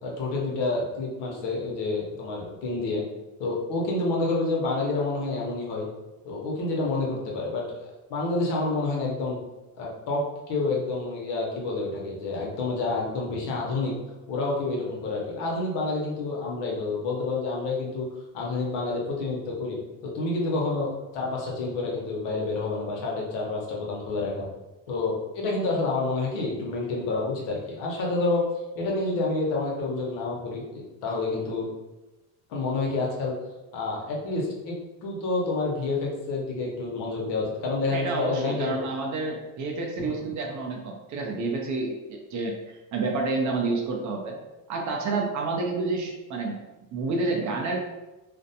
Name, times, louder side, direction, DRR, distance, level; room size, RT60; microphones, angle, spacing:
voice 1, 0.0-3.0 3.4-5.9 6.2-9.4 9.8-13.9 14.3-18.1 18.3-19.8 20.0-24.4 24.9-28.4 28.7-31.7 32.5-33.3 33.7-34.8 35.0-38.8 40.0-40.3, left 3 dB, 65° left, -2 dB, 0.9 m, -28 dB
voice 2, 37.9-44.4 44.7-46.6 46.9-47.8, right 3 dB, 45° right, 1 dB, 0.5 m, -29 dB
2.5 x 2.1 x 2.7 m, 1.1 s
cardioid pair, 115°, 44 cm